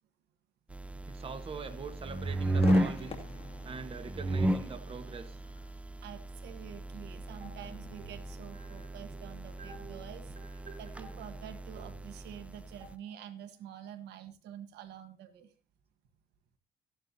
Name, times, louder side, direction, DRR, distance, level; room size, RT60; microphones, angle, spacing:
sound 1, 0.7-12.9, right 1 dB, 5° right, 0.4 m, -35 dB
voice 1, 1.1-3.2 3.6-5.4, right 5 dB, 35° right, 8 dB, 1.4 m, -43 dB
Crowd / Fireworks, 2.6-9.9, left 5 dB, 35° left, 2.4 m, -47 dB
voice 2, 6.0-15.5, right 10 dB, 80° right, 8 dB, 1.4 m, -48 dB
sound 2, 7.4-13.6, right 3 dB, 50° right, 7.1 m, -53 dB
14.0 x 11.0 x 2.8 m, 0.34 s
cardioid pair, 110°, 17 cm